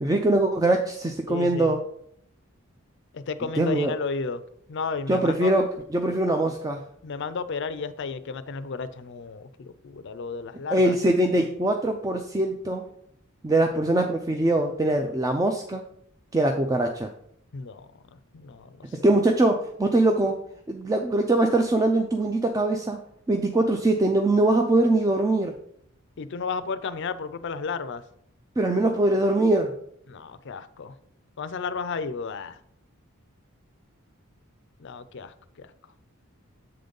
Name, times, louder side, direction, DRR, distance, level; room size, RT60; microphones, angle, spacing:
voice 1, 0.0-1.8 3.6-3.9 5.1-6.8 10.7-12.9 13.4-15.8 16.3-17.1 18.9-23.0 23.3-25.5 28.6-29.7, right 2 dB, 15° right, 4 dB, 0.4 m, -22 dB
voice 2, 1.3-1.8 3.1-4.4 4.7-5.5 7.0-10.9 17.5-18.8 26.2-28.0 30.1-30.9 31.4-32.6 34.8-35.7, left 5 dB, 55° left, 13 dB, 0.5 m, -33 dB
7.6 x 3.9 x 5.2 m, 0.69 s
head